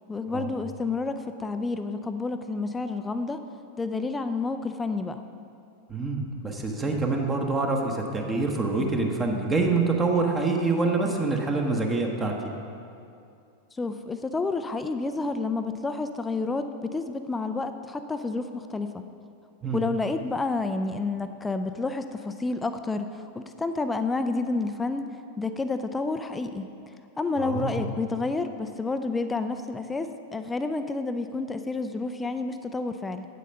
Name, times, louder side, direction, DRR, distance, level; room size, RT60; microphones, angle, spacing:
voice 1, 0.1-3.4 3.8-5.2 13.8-18.9 19.7-25.0 25.4-26.7 27.2-33.3, left 3 dB, 10° left, 9 dB, 0.4 m, -29 dB
voice 2, 5.9-12.4 19.6-19.8 27.4-27.8, right 3 dB, 20° right, 2 dB, 1.0 m, -26 dB
8.4 x 8.2 x 5.4 m, 2.5 s
figure-of-eight pair, 90°, 0 cm